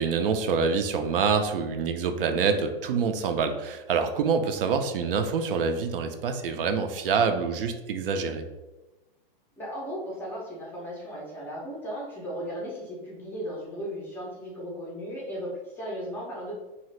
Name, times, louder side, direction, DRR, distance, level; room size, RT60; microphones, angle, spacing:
voice 1, 0.0-8.4, right 5 dB, 70° right, 7 dB, 0.5 m, -26 dB
voice 2, 9.6-16.5, equal, 5° left, -6 dB, 0.4 m, -36 dB
2.7 x 2.4 x 3.1 m, 1.1 s
hypercardioid pair, 150°, 29 cm